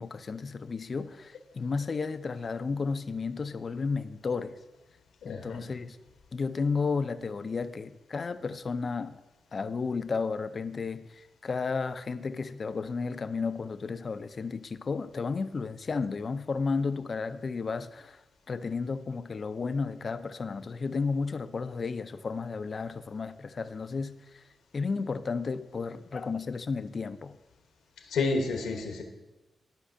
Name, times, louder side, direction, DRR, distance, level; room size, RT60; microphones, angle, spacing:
voice 1, 0.0-4.6 5.2-6.0 6.3-9.2 9.5-18.2 18.5-24.4 24.7-27.4, left 4 dB, 50° left, 0.4 m, -33 dB
voice 2, 5.2-5.6 28.1-29.0, left 3 dB, 85° left, 1.1 m, -30 dB
13.0 x 5.2 x 2.7 m
cardioid pair, 55°, 0 cm